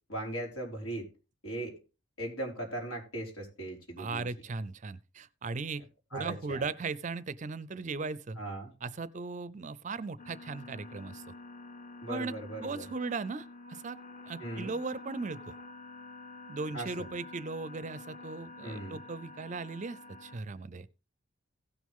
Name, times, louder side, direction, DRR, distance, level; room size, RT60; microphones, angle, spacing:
voice 1, 0.1-1.1 1.4-1.8 2.2-4.3 6.1-6.6 8.4-8.7 12.0-12.9 14.4-14.7 16.7-17.1 18.6-19.0, right 1 dB, 85° left, 4.0 m, -38 dB
voice 2, 4.0-5.8 6.1-8.4 8.8-11.3 12.1-14.0 14.3-15.5 16.5-20.9, right 4 dB, 35° right, 0.4 m, -38 dB
sound 1, 10.2-20.4, left 2 dB, 35° left, 0.9 m, -48 dB
16.5 x 6.3 x 3.6 m
head